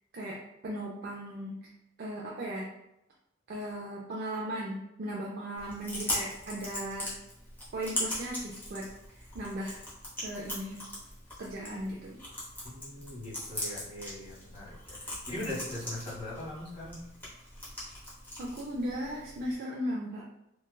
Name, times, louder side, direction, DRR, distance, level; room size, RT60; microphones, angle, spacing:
voice 1, 0.6-1.6 2.0-2.7 3.5-7.1 7.7-8.8 9.1-9.8 10.2-10.8 11.4-12.2 18.4-20.2, right 1 dB, 50° right, -3 dB, 0.4 m, -37 dB
Chewing mastication, 5.6-19.6, left 1 dB, 10° left, 0.8 m, -40 dB
voice 2, 12.7-17.0, left 1 dB, 25° left, -9 dB, 1.4 m, -40 dB
3.1 x 2.2 x 2.3 m, 0.83 s
head